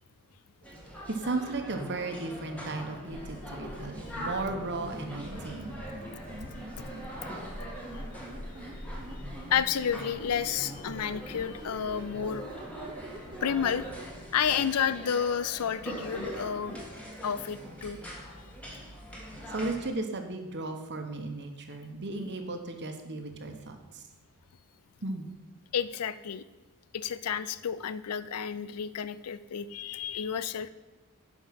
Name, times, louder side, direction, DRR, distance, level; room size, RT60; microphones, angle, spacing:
sound 1, 0.6-19.9, right 1 dB, 5° left, 1.6 m, -42 dB
voice 1, 1.2-6.0 19.5-24.1 25.0-25.3, right 2 dB, 50° right, 5 dB, 1.1 m, -35 dB
sound 2, 3.1-14.7, equal, 40° left, 1.4 m, -46 dB
sound 3, 4.8-7.1 7.8-9.9 10.2-13.8, right 1 dB, 20° right, 1.0 m, -46 dB
voice 2, 9.5-12.4 13.4-13.8 14.3-16.8 17.2-18.0 25.7-26.4 26.9-30.7, left 8 dB, 85° left, 15 dB, 0.5 m, -31 dB
10.5 x 5.1 x 5.9 m, 1.2 s
head